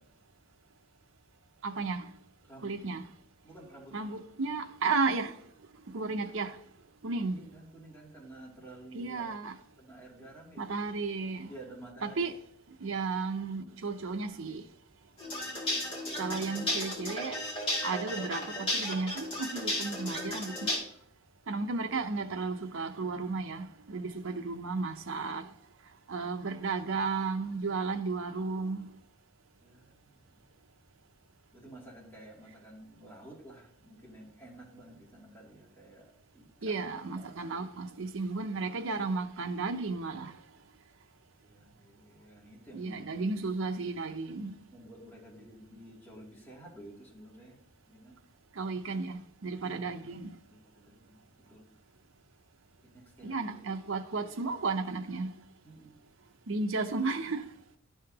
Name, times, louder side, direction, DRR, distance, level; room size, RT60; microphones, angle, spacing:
voice 1, 1.6-2.1 2.6-3.0 3.9-5.3 5.9-6.6 7.0-7.4 8.9-9.6 10.6-11.5 12.0-12.3 12.8-14.6 16.2-17.4 17.8-20.7 21.5-25.5 26.1-28.8 36.6-40.3 42.7-44.6 48.6-50.3 53.2-55.3 56.5-57.4, right 4 dB, 75° right, 0.6 m, -33 dB
voice 2, 2.5-2.9 3.4-4.1 7.3-9.3 9.8-10.8 11.5-12.3 29.6-30.3 31.5-36.8 37.2-37.8 41.4-43.3 44.7-47.6 47.9-48.2 49.6-50.2 50.5-51.2 51.5-51.6 52.8-53.8 55.6-56.0, right 1 dB, 10° left, 2.6 m, -52 dB
sound 1, 15.2-20.8, left 1 dB, 25° left, 2.4 m, -34 dB
12.0 x 5.7 x 2.9 m
head